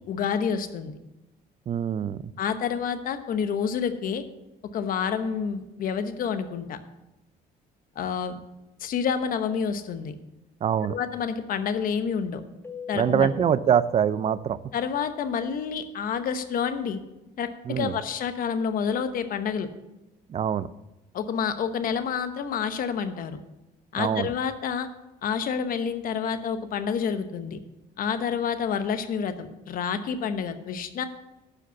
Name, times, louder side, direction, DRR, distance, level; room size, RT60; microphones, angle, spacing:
voice 1, 0.1-1.0 2.4-4.2 4.7-6.8 8.0-8.4 8.8-10.1 10.9-12.4 12.9-13.3 14.7-17.0 17.4-19.7 21.1-23.4 23.9-24.9 25.2-27.6 28.0-31.0, left 7 dB, 55° left, 10 dB, 1.0 m, -28 dB
voice 2, 1.7-2.2 10.6-11.0 12.9-14.6 17.6-18.0 20.3-20.7 24.0-24.3, right 8 dB, 35° right, 17 dB, 0.4 m, -24 dB
Keyboard (musical), 12.6-15.2, left 6 dB, 15° left, 1.0 m, -42 dB
11.5 x 5.1 x 7.0 m, 0.98 s
cardioid pair, 110°, 17 cm